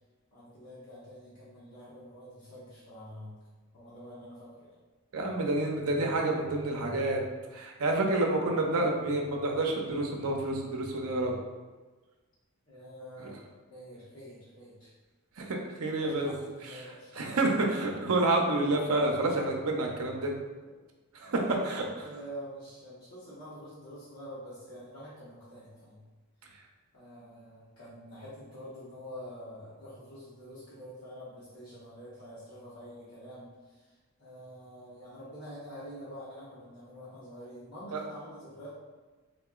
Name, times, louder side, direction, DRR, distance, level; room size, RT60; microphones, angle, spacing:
voice 1, 0.3-3.4 3.7-4.8 12.7-13.4 13.7-14.9 16.0-17.8 21.6-26.0 26.9-38.7, equal, 65° left, -10 dB, 1.0 m, -46 dB
voice 2, 5.1-7.2 7.5-11.3 13.2-13.3 15.4-16.3 16.7-16.8 17.2-20.3 21.1-21.8 37.9-38.0, right 2 dB, 75° right, 1 dB, 0.6 m, -29 dB
4.2 x 2.8 x 2.3 m, 1.3 s
head